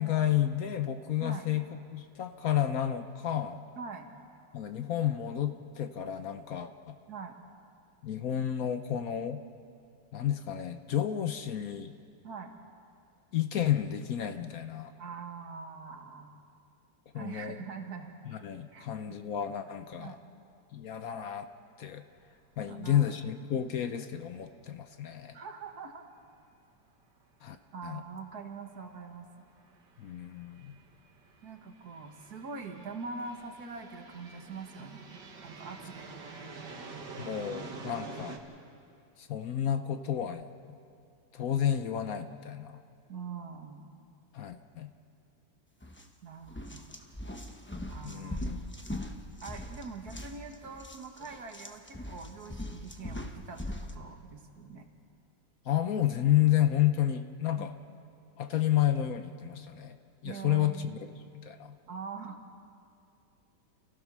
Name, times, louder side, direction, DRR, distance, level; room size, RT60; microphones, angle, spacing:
voice 1, 0.0-3.6 4.5-7.0 8.0-9.4 10.1-11.9 13.3-14.9 17.1-17.6 18.2-20.2 20.7-21.5 21.8-22.0 22.6-25.4 27.4-27.6 27.8-28.0 30.0-30.8 37.1-38.4 39.2-40.5 41.3-42.8 44.3-44.9 48.0-48.7 55.7-57.7 58.4-60.0 60.2-61.7, left 11 dB, 60° left, 8 dB, 1.1 m, -31 dB
voice 2, 3.8-4.1 7.1-7.4 12.2-12.6 15.0-16.4 17.1-18.1 18.7-19.2 20.0-20.3 22.7-23.1 25.3-26.1 27.7-29.3 31.4-35.1 35.4-36.1 43.1-44.0 46.2-46.9 47.9-48.5 49.4-54.9 57.6-57.7 60.2-61.0 61.9-62.4, right 4 dB, 60° right, 4 dB, 2.0 m, -43 dB
sound 1, 22.2-22.4 22.7-22.8 26.8-26.9 28.0-28.2 28.8-38.4, right 4 dB, 80° right, 2.2 m, -47 dB
sound 2, 45.8-46.0 46.4-54.0, left 1 dB, 10° left, 0.8 m, -41 dB
29.5 x 15.5 x 6.1 m, 2.5 s
omnidirectional pair, 1.8 m